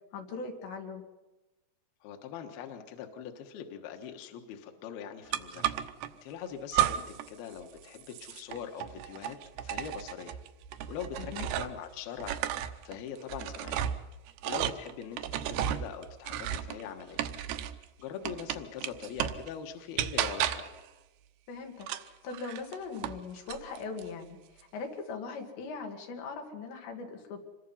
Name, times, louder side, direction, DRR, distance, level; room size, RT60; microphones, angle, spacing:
voice 1, 0.1-1.0 11.2-11.5 21.5-27.4, left 4 dB, 90° left, 2 dB, 4.6 m, -40 dB
voice 2, 2.0-5.6 6.2-9.4 9.6-10.4 10.9-12.4 12.8-13.9 14.5-15.2 15.5-17.2 18.0-20.7, left 8 dB, 70° left, 5 dB, 3.1 m, -42 dB
sound 1, 5.3-6.1 6.7-7.3 7.6-11.9 12.2-17.8 18.2-19.5 20.0-20.8 21.8-23.2 23.5-24.1, right 11 dB, 75° right, 2.8 m, -33 dB
26.5 x 22.0 x 5.6 m, 1.1 s
omnidirectional pair, 4.9 m